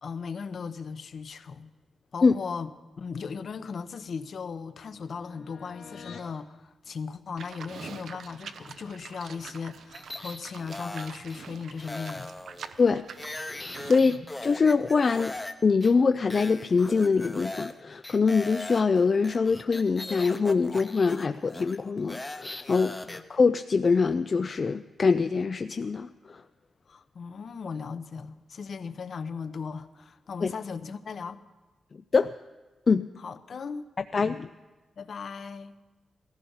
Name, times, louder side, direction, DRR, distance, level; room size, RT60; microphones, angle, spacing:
voice 1, 0.0-1.7 2.1-2.7 3.0-12.3 14.0-14.2 23.0-23.2 26.9-31.4 33.2-33.8 34.2-34.4 35.0-35.8, left 5 dB, 50° left, 11 dB, 0.8 m, -37 dB
sound 1, 3.4-6.4, left 6 dB, 85° left, 2.2 m, -50 dB
Livestock farm animals working animals, 7.4-14.1, right 6 dB, 70° right, 0.8 m, -45 dB
sound 2, 9.9-11.4 11.8-15.5 15.8-15.9 16.3-17.8 18.0-23.2, left 2 dB, 15° left, 0.8 m, -39 dB
voice 2, 13.5-15.3 15.6-26.4 30.4-30.5 32.1-32.3 32.9-33.1 34.1-34.5, left 4 dB, 35° left, 9 dB, 0.4 m, -24 dB
17.5 x 14.5 x 5.6 m, 1.2 s
wide cardioid pair, 150°, 0 cm